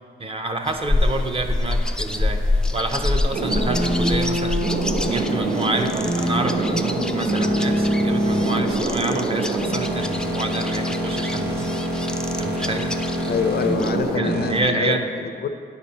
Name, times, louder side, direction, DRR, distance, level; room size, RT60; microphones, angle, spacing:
voice 1, 0.2-4.6 5.1-11.7 12.4-12.9 14.2-15.0, right 2 dB, 30° right, 5 dB, 0.6 m, -28 dB
sound 1, 0.7-14.2, left 2 dB, 5° left, 0.3 m, -27 dB
sound 2, 3.3-14.6, right 1 dB, 65° right, 1.9 m, -24 dB
voice 2, 13.3-15.5, left 6 dB, 60° left, 9 dB, 0.5 m, -26 dB
9.2 x 4.3 x 5.3 m, 2.2 s
cardioid pair, 85°, 19 cm